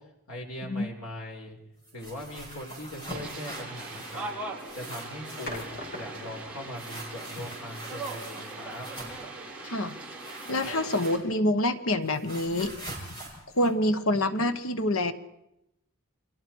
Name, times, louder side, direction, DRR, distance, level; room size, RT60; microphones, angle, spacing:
voice 1, 0.3-1.6 1.9-4.3 4.7-8.9, left 1 dB, 85° left, 1 dB, 4.5 m, -40 dB
sound 1, 1.4-1.8 3.9-4.3 5.4-6.6, left 1 dB, 45° left, 7.8 m, -41 dB
sound 2, 1.8-4.3 4.6-5.8 6.8-9.3 10.2-11.5 11.8-14.4, right 1 dB, 20° left, 7.5 m, -43 dB
sound 3, 3.1-11.2, right 2 dB, 5° right, 4.5 m, -40 dB
voice 2, 9.6-10.0 10.5-12.7 13.5-15.1, left 1 dB, 70° left, 10 dB, 1.2 m, -26 dB
29.5 x 23.0 x 4.6 m, 0.86 s
head